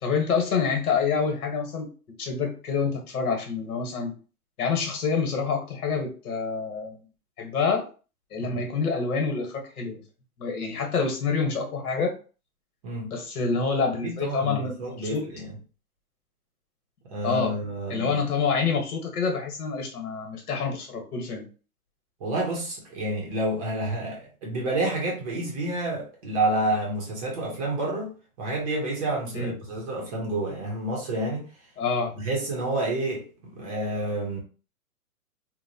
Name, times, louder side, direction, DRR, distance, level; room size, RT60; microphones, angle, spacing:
voice 1, 0.0-1.9 2.2-4.1 4.6-7.0 7.4-7.9 8.3-10.0 10.4-12.1 13.1-15.3 17.2-17.6 17.9-21.5 29.3-29.5 31.8-32.1, left 5 dB, 70° left, 1.2 m, -27 dB
voice 2, 14.0-15.4 17.1-18.2 22.2-28.1 28.4-31.5 32.1-33.2 33.5-34.4, right 1 dB, 25° right, 0.6 m, -29 dB
2.9 x 2.1 x 2.7 m
hypercardioid pair, 145°, 45 cm